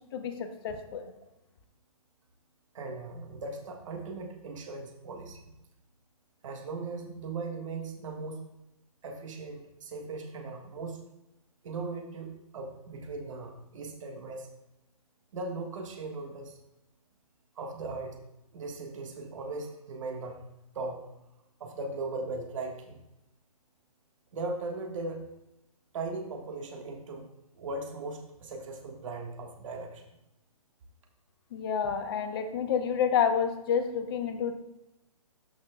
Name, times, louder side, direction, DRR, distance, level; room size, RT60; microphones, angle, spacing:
voice 1, 0.1-1.1 31.5-34.5, left 7 dB, 40° left, 7 dB, 0.8 m, -29 dB
voice 2, 2.7-5.5 6.4-8.5 9.0-11.0 11.6-14.5 15.3-16.6 17.5-18.2 18.5-20.4 20.7-21.0 21.6-23.0 24.3-25.3 25.9-27.3 27.5-30.1, right 3 dB, 55° right, 2 dB, 1.6 m, -38 dB
13.0 x 5.9 x 2.3 m, 0.92 s
hypercardioid pair, 145°, 19 cm